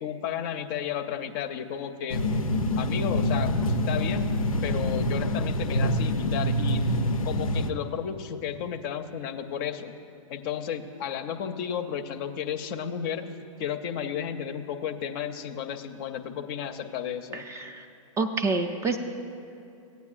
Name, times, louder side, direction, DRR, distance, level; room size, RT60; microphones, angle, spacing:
voice 1, 0.0-2.3 2.8-4.3 4.6-10.0 10.3-13.3 13.6-17.5, left 8 dB, 40° left, 9 dB, 0.5 m, -33 dB
sound 1, 2.1-7.7, left 1 dB, 90° left, 0.5 m, -26 dB
voice 2, 17.3-17.9 18.2-19.0, right 4 dB, 15° right, 6 dB, 0.4 m, -28 dB
15.5 x 9.2 x 2.5 m, 2.7 s
hypercardioid pair, 110°, 17 cm